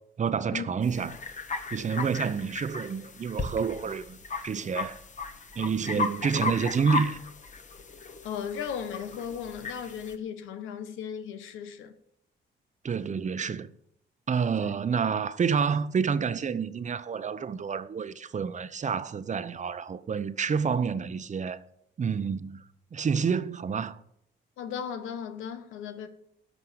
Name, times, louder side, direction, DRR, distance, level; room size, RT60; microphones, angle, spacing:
voice 1, 0.2-1.2 1.7-5.0 5.6-7.2 12.8-13.7 14.3-21.6 22.0-22.6 22.9-24.0, right 6 dB, 35° right, 0.8 m, -29 dB
sound 1, 0.8-10.2, left 3 dB, 40° left, 1.4 m, -36 dB
voice 2, 8.2-11.9 14.6-14.7 24.6-26.1, left 7 dB, 85° left, 1.2 m, -36 dB
13.0 x 5.4 x 8.0 m
cardioid pair, 90°, 20 cm